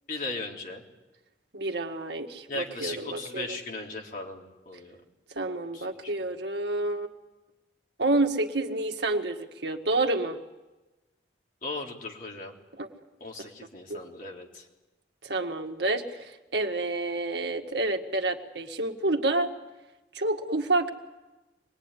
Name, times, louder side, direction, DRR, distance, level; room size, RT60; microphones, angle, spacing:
voice 1, 0.1-0.8 2.5-5.0 5.7-6.1 11.6-12.5 13.2-14.7, left 2 dB, 45° left, -1 dB, 3.6 m, -37 dB
voice 2, 1.5-3.5 5.3-7.1 8.0-10.4 12.8-12.9 13.9-14.0 15.2-19.5 20.1-20.9, right 2 dB, 70° right, 4 dB, 1.9 m, -29 dB
25.5 x 20.5 x 9.9 m, 1.1 s
head